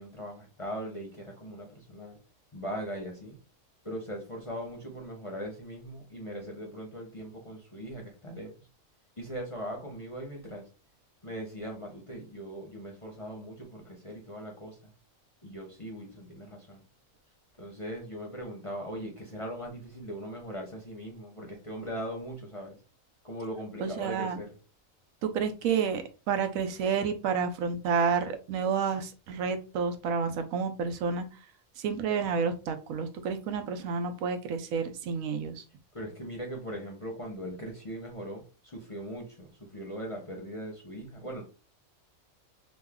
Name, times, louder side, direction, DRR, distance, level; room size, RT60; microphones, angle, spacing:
voice 1, 0.0-2.2 2.5-3.4 3.8-8.5 9.2-10.7 11.2-14.8 15.4-16.8 17.6-22.8 23.2-24.5 35.9-41.4, equal, 35° left, 0.6 m, -40 dB
voice 2, 23.8-24.4 25.2-31.3 31.8-35.6, right 6 dB, 85° right, 1.0 m, -30 dB
3.0 x 2.1 x 3.5 m
omnidirectional pair, 1.4 m